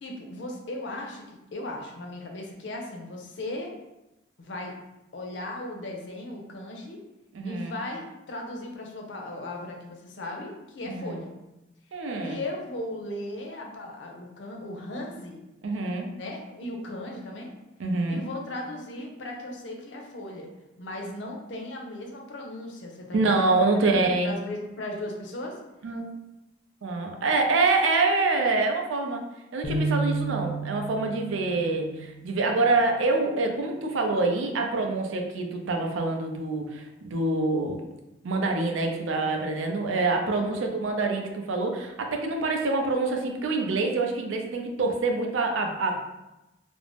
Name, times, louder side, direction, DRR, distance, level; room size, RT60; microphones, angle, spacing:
voice 1, 0.0-3.7 4.4-4.7 5.1-7.0 7.4-11.3 12.2-15.4 16.1-17.5 18.1-20.5 20.8-23.5 24.0-25.6 40.3-40.7, left 1 dB, 70° left, 1 dB, 0.5 m, -37 dB
voice 2, 7.3-7.8 10.8-11.2 11.9-12.4 15.6-16.1 17.8-18.2 23.1-24.4 25.8-26.1 26.8-29.2 29.5-37.8 38.2-46.0, right 3 dB, 85° right, 3 dB, 0.4 m, -26 dB
sound 1, 29.6-33.2, right 3 dB, 15° left, 0.4 m, -32 dB
2.5 x 2.0 x 3.2 m, 0.96 s
head